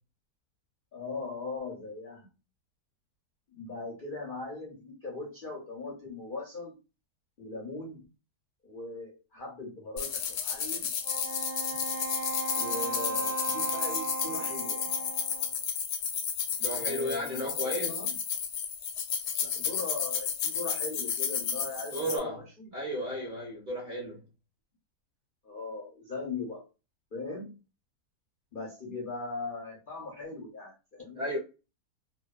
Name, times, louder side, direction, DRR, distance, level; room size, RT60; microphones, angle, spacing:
voice 1, 0.9-2.3 3.5-6.7 7.4-8.0 8.6-10.9 12.6-15.1 16.7-18.1 19.4-22.7 25.4-26.6 27.1-27.5 28.5-31.2, left 3 dB, 55° left, 0.5 m, -39 dB
sound 1, 10.0-22.2, left 7 dB, 80° left, 1.1 m, -32 dB
Wind instrument woodwind instrument, 11.0-15.6, right 3 dB, 80° right, 0.5 m, -36 dB
voice 2, 16.6-18.0 21.9-22.4 22.7-24.2 31.1-31.4, equal, 40° right, 0.7 m, -34 dB
2.7 x 2.1 x 2.2 m
omnidirectional pair, 1.7 m